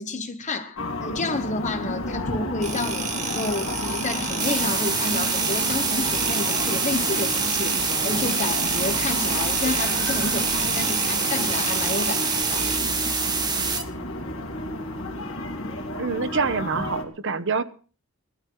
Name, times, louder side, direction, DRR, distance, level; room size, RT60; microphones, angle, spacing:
voice 1, 0.0-12.7, left 2 dB, 35° left, 1.5 m, -30 dB
sound 1, 0.8-17.0, left 1 dB, 70° left, 2.6 m, -31 dB
sound 2, 2.6-12.8, right 6 dB, 35° right, 2.0 m, -32 dB
sound 3, 4.4-13.8, right 4 dB, 20° right, 1.4 m, -26 dB
voice 2, 16.0-17.6, right 4 dB, 60° right, 0.9 m, -26 dB
18.0 x 12.5 x 4.7 m
head